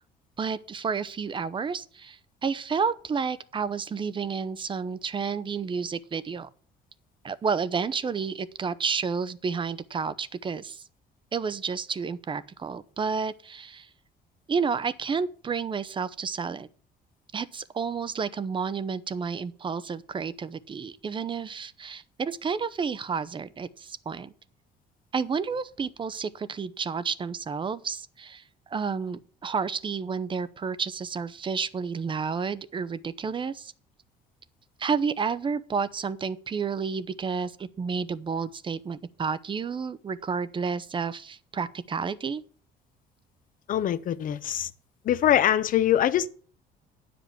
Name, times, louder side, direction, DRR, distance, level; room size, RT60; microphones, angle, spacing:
voice 1, 0.4-6.5 7.2-10.8 11.3-13.9 14.5-16.7 17.3-24.3 25.1-28.4 28.7-33.7 34.8-42.4, right 5 dB, 30° right, 0.7 m, -30 dB
voice 2, 43.7-44.7 45.0-46.3, left 11 dB, 55° left, 0.7 m, -23 dB
9.3 x 5.2 x 7.8 m
cardioid pair, 110°, 17 cm